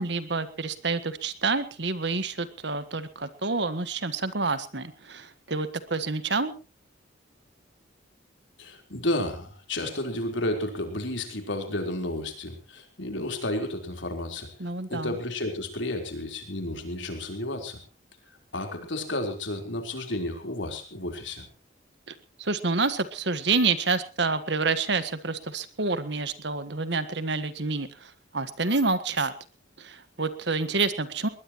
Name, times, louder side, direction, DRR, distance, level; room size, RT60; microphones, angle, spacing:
voice 1, 0.0-6.6 14.6-15.2 22.1-29.3 29.8-31.3, right 3 dB, 60° right, 12 dB, 1.5 m, -28 dB
voice 2, 8.6-17.8 18.5-21.4, left 1 dB, 70° left, 4 dB, 4.1 m, -32 dB
20.5 x 20.5 x 3.1 m, 0.34 s
head